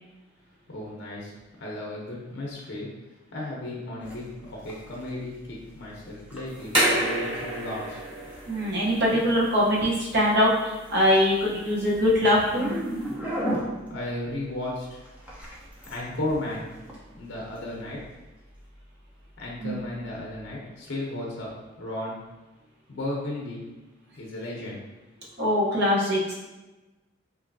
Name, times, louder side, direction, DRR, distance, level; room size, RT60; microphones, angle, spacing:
voice 1, 0.7-1.3 1.6-2.9 3.3-8.0 13.9-15.0 15.9-16.7 17.2-18.0 19.4-21.5 21.8-22.2 22.9-23.6 24.2-24.8, left 1 dB, 55° left, -4 dB, 0.6 m, -34 dB
sound 1, 4.0-20.5, equal, 5° right, 0.5 m, -39 dB
sound 2, 6.5-13.1, right 1 dB, 25° right, 1.0 m, -31 dB
voice 2, 8.5-12.7 19.6-19.8 25.4-26.3, left 1 dB, 55° right, -5 dB, 0.8 m, -22 dB
3.0 x 2.6 x 2.6 m, 1.1 s
head